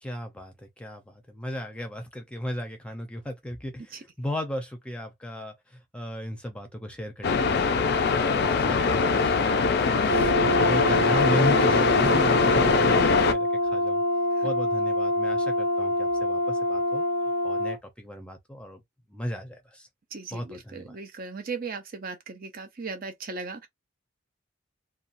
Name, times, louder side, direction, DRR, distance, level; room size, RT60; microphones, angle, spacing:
voice 1, 0.0-7.8 8.2-14.0 14.4-17.0 17.4-18.8 19.1-19.9 20.3-21.0, left 1 dB, 5° left, 0.6 m, -35 dB
sound 1, 7.2-13.3, left 4 dB, 50° left, 0.4 m, -22 dB
Brass instrument, 10.1-17.8, left 1 dB, 65° right, 1.0 m, -25 dB
voice 2, 20.1-23.7, right 4 dB, 45° right, 0.5 m, -37 dB
2.9 x 2.3 x 2.5 m
head